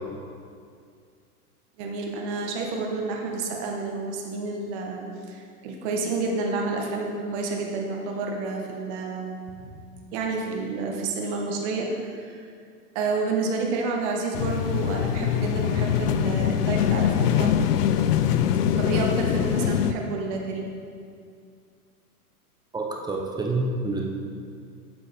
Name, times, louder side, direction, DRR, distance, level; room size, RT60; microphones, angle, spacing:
voice 1, 1.8-9.4 9.6-9.8 10.1-12.5 12.9-17.5 18.8-20.7, right 3 dB, 45° right, 0 dB, 1.5 m, -29 dB
sound 1, 14.3-19.9, left 9 dB, 80° left, 0.6 m, -23 dB
voice 2, 22.7-24.0, right 2 dB, 10° right, 0 dB, 0.9 m, -27 dB
7.9 x 7.6 x 3.6 m, 2.3 s
hypercardioid pair, 115°, 46 cm